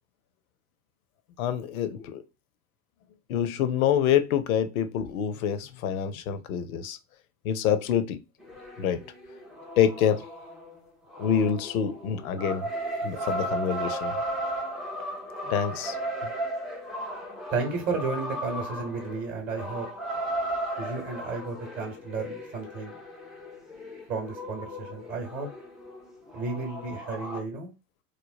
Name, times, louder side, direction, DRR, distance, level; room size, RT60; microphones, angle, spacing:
voice 1, 1.4-2.2 3.3-7.0 7.4-8.2 8.8-9.0 9.8-10.2 11.2-12.7 13.0-14.1 15.4-16.0, left 8 dB, 65° left, 0.6 m, -26 dB
sound 1, 8.4-27.4, right 1 dB, ahead, 0.3 m, -36 dB
voice 2, 17.5-19.9 20.8-23.0 24.1-25.5 26.3-27.7, right 4 dB, 30° right, 0.9 m, -33 dB
3.2 x 2.1 x 2.4 m
figure-of-eight pair, 70°, 46 cm